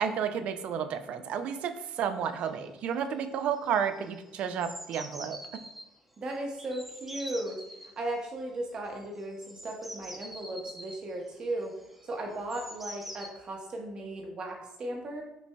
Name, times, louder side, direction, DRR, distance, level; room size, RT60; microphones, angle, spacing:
voice 1, 0.0-5.6, right 7 dB, 65° right, 9 dB, 0.4 m, -31 dB
sound 1, 2.3-2.7 3.0-3.3 3.5-5.8 6.6-7.9 9.0-13.3, equal, 5° right, 0.8 m, -45 dB
voice 2, 6.2-7.5 8.0-11.7 12.1-15.2, right 1 dB, 45° right, 1 dB, 0.8 m, -36 dB
5.9 x 2.7 x 2.2 m, 0.92 s
supercardioid pair, 70°, 2 cm